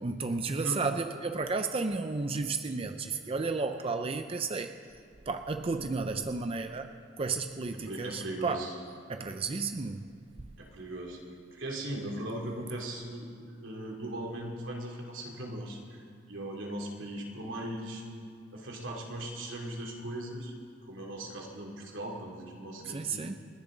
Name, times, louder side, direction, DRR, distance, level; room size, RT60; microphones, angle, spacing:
voice 1, 0.0-4.7 5.3-6.9 7.2-8.7 9.1-10.1 22.8-23.3, right 4 dB, 30° right, 7 dB, 0.5 m, -32 dB
voice 2, 7.8-8.7 10.6-11.2 11.5-13.3 13.6-16.0 16.3-18.0 18.5-20.5 20.8-23.3, right 1 dB, 85° right, -1 dB, 2.8 m, -38 dB
29.5 x 10.0 x 3.9 m, 2.3 s
head